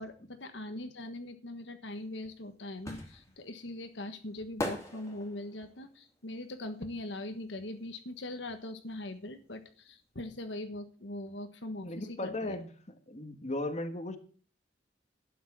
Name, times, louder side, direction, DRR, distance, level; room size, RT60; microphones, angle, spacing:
voice 1, 0.0-12.5, left 1 dB, 70° left, 8 dB, 1.4 m, -41 dB
sound 1, 2.0-7.8 8.1-9.7 10.0-10.1, left 1 dB, 15° left, 3.0 m, -42 dB
voice 2, 11.8-12.7 13.1-14.2, left 1 dB, 35° left, 7 dB, 1.5 m, -36 dB
12.0 x 9.3 x 6.0 m, 0.42 s
head